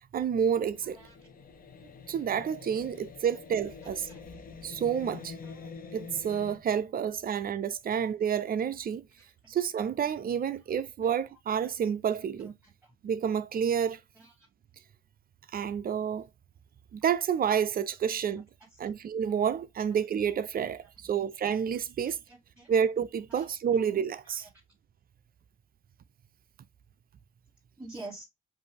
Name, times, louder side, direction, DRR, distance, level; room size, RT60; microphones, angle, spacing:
voice 1, 0.1-1.0 2.1-4.1 4.6-5.3 5.9-9.1 9.5-12.6 13.0-14.0 15.5-16.3 16.9-18.5 18.8-22.2 22.7-24.5, right 8 dB, 45° right, 0.5 m, -29 dB
sound 1, 0.7-6.6, left 5 dB, 45° left, 1.0 m, -46 dB
voice 2, 22.0-22.7 23.4-23.5 27.8-28.2, right 2 dB, 5° right, 2.0 m, -46 dB
5.3 x 2.6 x 3.4 m
cardioid pair, 90°, 20 cm